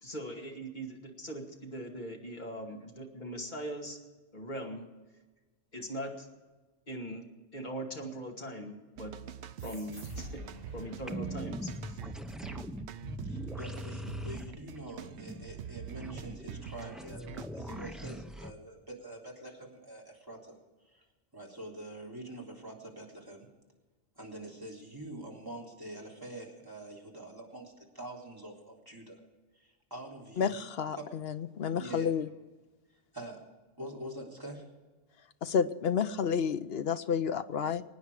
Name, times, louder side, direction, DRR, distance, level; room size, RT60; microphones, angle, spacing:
voice 1, 0.0-4.0 4.3-4.9 5.7-6.3 6.9-7.3 7.5-9.1 9.6-10.4 10.7-12.0, equal, 40° left, 0 dB, 2.4 m, -40 dB
sound 1, 9.0-18.1, right 9 dB, 70° right, 0.9 m, -45 dB
sound 2, 9.6-12.6, equal, 50° right, 3.1 m, -49 dB
sound 3, 11.1-18.5, equal, ahead, 0.5 m, -42 dB
voice 2, 13.2-20.6 20.8-21.0 21.3-23.5 24.2-29.2 29.5-30.6 30.9-31.1 31.8-32.1 33.1-33.4 33.8-34.7, right 1 dB, 15° right, -2 dB, 3.3 m, -45 dB
voice 3, 30.4-32.3 35.4-37.8, left 7 dB, 60° left, 11 dB, 0.9 m, -30 dB
24.0 x 9.7 x 4.9 m, 1.2 s
omnidirectional pair, 1.2 m